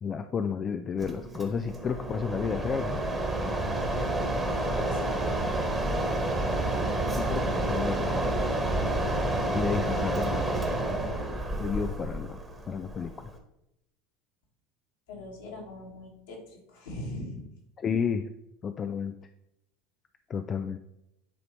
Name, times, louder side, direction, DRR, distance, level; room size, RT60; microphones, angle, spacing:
voice 1, 0.0-3.0 7.2-8.4 9.5-10.5 10.8-11.1 11.6-12.4 12.7-13.3 17.8-18.3 18.6-19.2 20.3-20.8, left 6 dB, 30° left, 8 dB, 0.4 m, -31 dB
Mechanisms, 1.0-13.4, right 1 dB, 15° right, 1.3 m, -29 dB
voice 2, 4.5-5.2 15.1-17.4, left 1 dB, 65° left, -2 dB, 2.1 m, -41 dB
10.0 x 3.9 x 3.3 m, 0.83 s
figure-of-eight pair, 75°, 0 cm